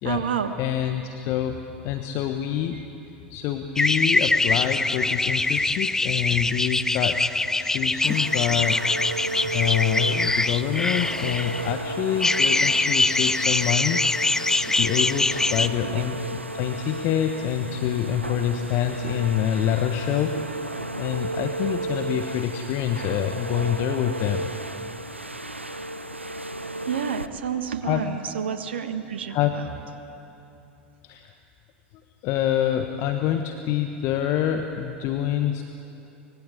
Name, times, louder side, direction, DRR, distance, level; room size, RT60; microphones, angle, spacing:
voice 1, 0.0-0.5 2.7-2.8 15.8-16.0 26.9-29.6, right 7 dB, 70° right, 9 dB, 1.5 m, -29 dB
voice 2, 0.6-2.8 3.3-7.2 7.6-8.8 9.5-14.0 14.6-20.6 21.0-24.5 27.8-28.0 29.3-29.6 31.0-31.3 32.2-35.6, left 10 dB, 45° left, 6 dB, 1.3 m, -26 dB
sound 1, 3.8-11.7 12.2-15.7, left 2 dB, 10° left, 0.7 m, -23 dB
sound 2, 8.0-27.3, right 2 dB, 90° right, 0.9 m, -33 dB
24.5 x 21.0 x 8.5 m, 2.9 s
figure-of-eight pair, 80°, 6 cm